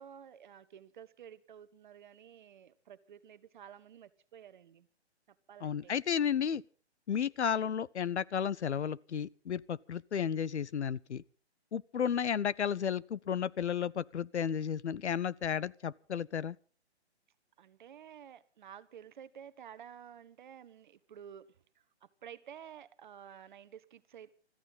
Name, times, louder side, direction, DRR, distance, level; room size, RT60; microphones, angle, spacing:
voice 1, 0.0-4.9 5.3-5.9 17.6-24.3, right 9 dB, 45° right, 1.1 m, -52 dB
voice 2, 5.6-6.6 7.1-11.2 11.7-16.6, left 8 dB, 75° left, 0.7 m, -33 dB
24.5 x 14.0 x 4.0 m
hypercardioid pair, 145°, 34 cm